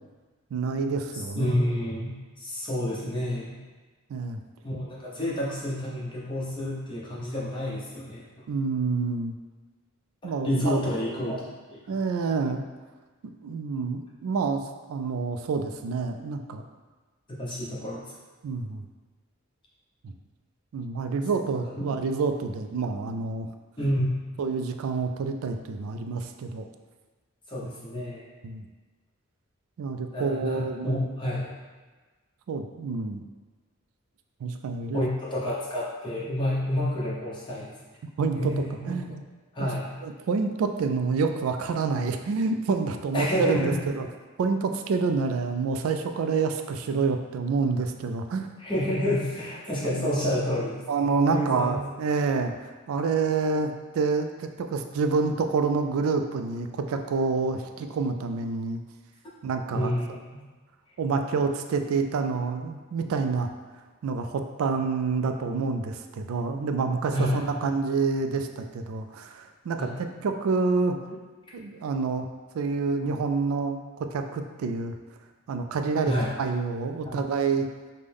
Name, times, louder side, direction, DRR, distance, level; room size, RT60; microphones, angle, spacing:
voice 1, 0.5-1.5 4.1-4.4 8.5-9.3 10.2-10.8 11.9-12.6 13.4-14.6 14.9-16.6 18.4-18.8 20.0-20.1 20.7-23.5 24.4-26.7 28.4-28.7 29.8-31.0 32.5-33.2 34.4-35.0 38.0-38.5 38.9-39.2 39.6-39.7 40.0-44.0 44.4-48.5 50.0-50.1 50.9-58.8 59.4-59.9 61.0-63.5 64.0-71.0 71.5-72.3 72.5-73.8 74.1-74.9 75.5-77.7, right 4 dB, 85° right, 6 dB, 0.3 m, -28 dB
voice 2, 1.4-3.5 4.6-8.2 10.2-11.5 17.4-18.0 21.6-21.9 23.8-24.1 27.5-28.2 30.1-31.5 34.9-37.7 38.4-39.0 39.5-39.9 43.1-43.8 48.6-51.8 59.7-60.2 67.1-67.4 69.8-69.9 76.0-76.3 77.0-77.2, equal, 25° left, -7 dB, 1.0 m, -29 dB
5.2 x 2.2 x 3.4 m, 1.3 s
head